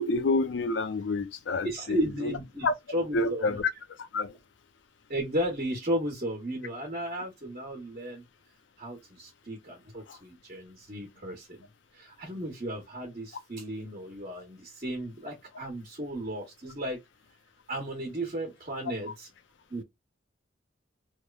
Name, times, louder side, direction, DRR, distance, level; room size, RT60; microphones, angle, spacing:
voice 1, 0.0-2.3 2.6-2.7 3.1-3.7 4.1-4.4 10.1-10.2, left 3 dB, 70° left, 0.4 m, -28 dB
voice 2, 1.6-2.7 2.9-3.6 5.1-8.2 8.8-11.7 11.9-17.0 17.7-19.3 19.7-19.8, equal, 40° right, 0.8 m, -34 dB
3.0 x 2.0 x 2.2 m
head